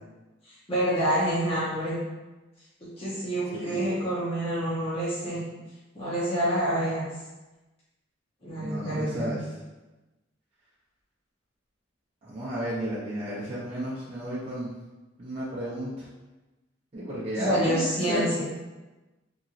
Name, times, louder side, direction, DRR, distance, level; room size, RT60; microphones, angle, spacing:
voice 1, 0.7-1.9 3.0-5.4 5.9-7.0 8.4-9.3 17.4-18.4, equal, 30° left, -10 dB, 0.7 m, -27 dB
voice 2, 8.6-9.4 12.2-14.7 15.2-16.1 16.9-18.3, right 1 dB, 30° right, -9 dB, 0.5 m, -33 dB
2.9 x 2.6 x 2.4 m, 1.1 s
head